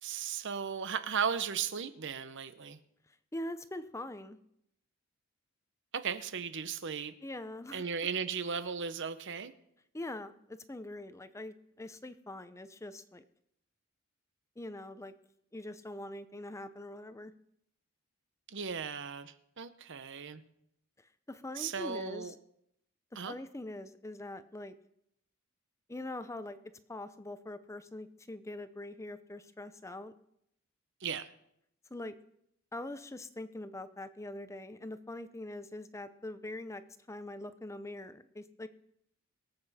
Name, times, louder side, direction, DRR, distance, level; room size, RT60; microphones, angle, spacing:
voice 1, 0.0-2.8 5.9-7.1 7.7-9.5 18.5-20.4 21.5-22.3 23.1-23.4 31.0-31.3, right 6 dB, 55° right, 12 dB, 0.8 m, -36 dB
voice 2, 3.3-4.4 7.2-7.8 9.9-13.2 14.6-15.1 15.5-17.3 21.3-22.3 23.1-24.7 25.9-26.6 26.9-30.1 31.9-32.1 32.7-36.8 37.1-38.7, left 1 dB, 15° left, 12 dB, 0.6 m, -43 dB
22.5 x 7.8 x 4.2 m, 0.77 s
head